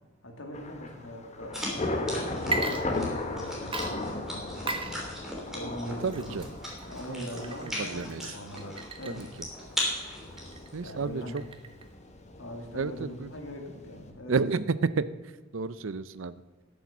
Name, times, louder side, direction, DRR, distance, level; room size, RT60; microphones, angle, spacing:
voice 1, 0.2-2.6 3.2-5.1 5.5-6.4 6.8-9.2 10.8-11.4 12.4-14.4, left 1 dB, 75° left, 2 dB, 2.5 m, -42 dB
Thunder / Rain, 0.5-14.1, left 2 dB, 35° left, 1.4 m, -37 dB
sound 1, 1.5-11.0, equal, ahead, 3.3 m, -39 dB
Water / Liquid, 2.4-3.4 3.7-11.9, right 3 dB, 25° right, 1.1 m, -38 dB
voice 2, 5.9-6.4 7.1-7.3 7.6-8.3 9.1-9.3 10.7-11.4 12.7-13.3 14.3-15.1 15.5-16.4, right 4 dB, 70° right, 16 dB, 0.6 m, -31 dB
13.5 x 7.1 x 7.2 m, 1.3 s
head